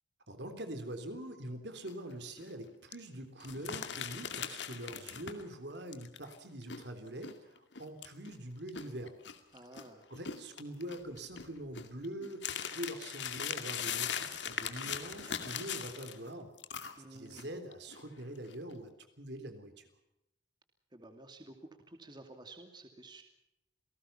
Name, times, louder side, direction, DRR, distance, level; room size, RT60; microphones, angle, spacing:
voice 1, 0.3-9.2 10.1-12.5 12.7-16.5 17.1-19.9, right 1 dB, 65° right, 8 dB, 3.6 m, -44 dB
sound 1, 1.9-2.1 2.4-2.5 2.9-3.0 3.4-5.6 5.9-9.8 10.1-16.3 16.6-17.5 17.7-18.0 18.4-18.7, left 8 dB, 70° left, 2.3 m, -40 dB
voice 2, 9.5-10.0 17.0-17.5 20.9-21.5 21.9-23.2, right 2 dB, 25° right, 5 dB, 2.5 m, -52 dB
28.5 x 19.0 x 5.8 m, 0.85 s
head